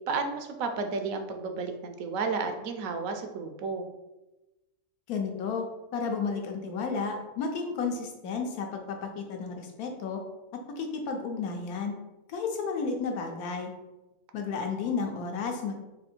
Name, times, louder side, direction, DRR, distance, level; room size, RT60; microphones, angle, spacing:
voice 1, 0.1-3.9, right 4 dB, 70° right, 5 dB, 0.9 m, -32 dB
voice 2, 5.1-5.6 5.9-10.2 10.8-11.9 12.3-13.7 14.3-15.8, left 5 dB, 75° left, 3 dB, 1.2 m, -32 dB
4.2 x 2.7 x 4.3 m, 1.0 s
omnidirectional pair, 1.6 m